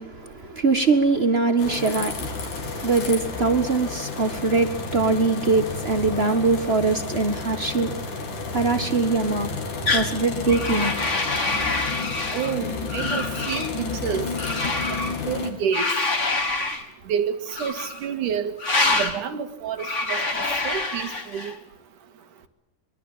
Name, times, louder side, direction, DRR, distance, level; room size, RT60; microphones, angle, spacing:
voice 1, 0.0-9.5 9.9-10.9, right 3 dB, 50° right, 0.7 m, -23 dB
sound 1, 1.6-15.5, left 4 dB, 75° left, 4.9 m, -31 dB
sound 2, 9.9-10.1 10.5-12.5 12.9-13.7 14.4-15.1 15.7-16.8 17.5-18.0 18.6-19.2 19.8-21.5, left 3 dB, 25° left, 2.4 m, -26 dB
voice 2, 12.3-14.3 15.3-15.8 17.1-18.5 18.9-20.2 20.6-21.5, right 8 dB, 75° right, 3.2 m, -28 dB
24.5 x 22.5 x 8.8 m
omnidirectional pair, 3.6 m